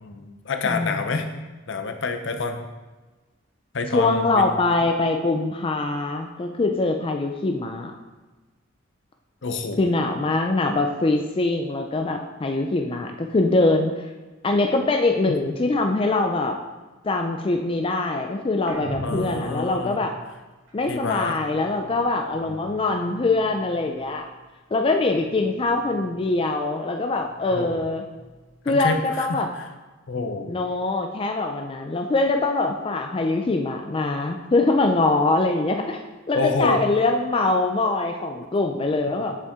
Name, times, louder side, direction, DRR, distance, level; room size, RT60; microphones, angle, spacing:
voice 1, 0.0-1.2 1.7-2.6 3.7-4.5 9.4-9.8 19.0-20.0 20.9-21.4 22.4-22.7 27.5-27.8 28.7-29.7 30.1-30.5 36.3-36.9 39.0-39.1, left 4 dB, 65° left, 6 dB, 0.7 m, -28 dB
voice 2, 3.9-7.9 9.8-14.1 14.4-16.6 17.0-20.1 20.7-24.3 24.7-28.0 28.7-29.5 30.5-36.0 36.3-39.4, left 2 dB, 25° left, 3 dB, 0.4 m, -23 dB
sound 1, 18.6-22.2 22.5-24.4 24.6-26.5 26.8-28.7, equal, 75° right, 2.5 m, -41 dB
7.2 x 6.8 x 3.7 m, 1.2 s
head